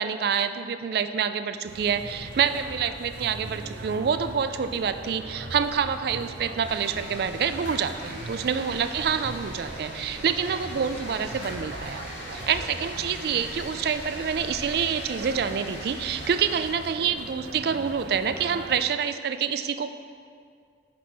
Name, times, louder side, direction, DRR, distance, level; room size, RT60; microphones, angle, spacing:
voice 1, 0.0-12.1 12.3-19.9, right 7 dB, 55° right, 11 dB, 0.3 m, -27 dB
sound 1, 1.7-18.8, right 2 dB, 85° right, 0.6 m, -40 dB
sound 2, 6.6-16.7, left 1 dB, 80° left, 1.9 m, -41 dB
6.0 x 5.8 x 4.6 m, 2.2 s
head